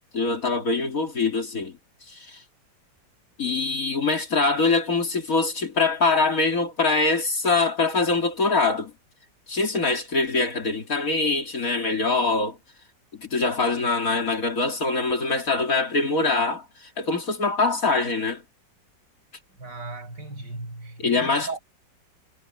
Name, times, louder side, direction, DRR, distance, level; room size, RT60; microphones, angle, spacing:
voice 1, 0.0-1.8 2.1-2.4 3.4-8.9 9.5-12.6 13.1-18.4 21.0-21.6, left 3 dB, 50° left, 2.8 m, -24 dB
voice 2, 19.6-21.6, right 3 dB, 70° right, 8.4 m, -36 dB
omnidirectional pair, 2.0 m